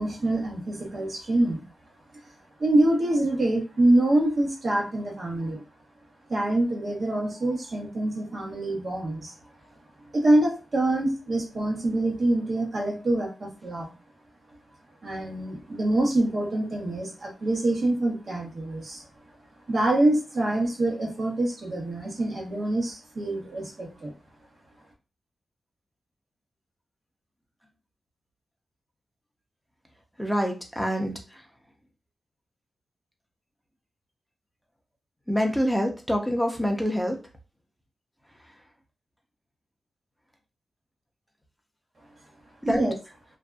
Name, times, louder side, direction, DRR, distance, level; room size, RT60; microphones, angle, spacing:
voice 1, 0.0-1.6 2.6-5.6 6.3-9.3 10.1-13.9 15.0-19.0 19.7-24.1 42.6-42.9, right 1 dB, 55° right, -1 dB, 1.0 m, -25 dB
voice 2, 30.2-31.1 35.3-37.2 42.7-42.8, equal, ahead, 2 dB, 0.6 m, -25 dB
2.6 x 2.4 x 2.3 m, 0.31 s
cardioid pair, 80°, 0 cm